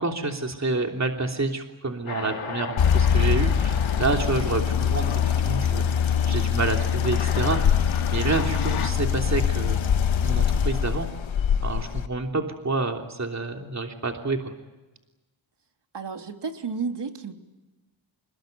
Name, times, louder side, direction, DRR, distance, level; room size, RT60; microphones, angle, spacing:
voice 1, 0.0-9.8 10.2-11.1 11.6-14.5, right 3 dB, 35° right, 3 dB, 3.2 m, -28 dB
sound 1, 2.1-8.9, left 7 dB, 90° left, 2.7 m, -37 dB
sound 2, 2.8-12.1, left 8 dB, 70° left, 1.3 m, -23 dB
voice 2, 15.9-17.3, right 5 dB, 60° right, 4 dB, 3.3 m, -32 dB
27.0 x 21.0 x 9.4 m, 1.1 s
cardioid pair, 65°, 47 cm